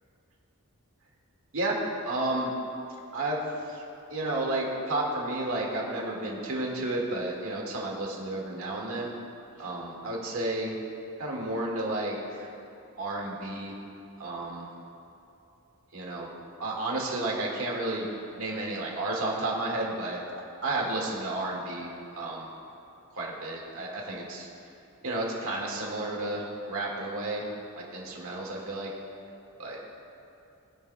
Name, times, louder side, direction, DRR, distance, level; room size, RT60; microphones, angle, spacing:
voice 1, 2.0-2.5 3.1-3.8 4.1-9.1 9.6-10.7 11.2-12.5 13.0-13.8 14.2-14.7 15.9-16.3 16.6-18.1 18.4-20.2 20.6-22.5 23.1-24.5 25.0-27.4 27.7-28.9 29.6-29.8, right 2 dB, 70° right, -2 dB, 1.9 m, -32 dB
20.5 x 6.8 x 2.3 m, 2.8 s
head